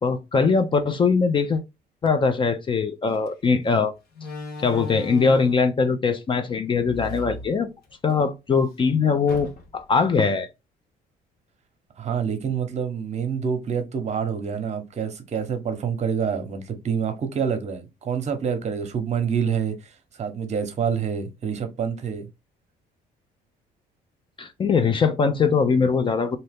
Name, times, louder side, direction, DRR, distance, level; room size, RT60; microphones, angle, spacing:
voice 1, 0.0-1.6 2.0-3.9 4.6-7.7 8.0-10.5 24.4-26.4, left 5 dB, 30° left, 0.5 m, -21 dB
Slam, 3.1-3.3 4.1-5.7 6.7-8.2 8.5-8.6 9.3-9.9, left 3 dB, 65° left, 1.2 m, -37 dB
voice 2, 12.0-22.3, right 7 dB, 40° right, 0.9 m, -27 dB
2.7 x 2.7 x 3.4 m
cardioid pair, 110°, 17 cm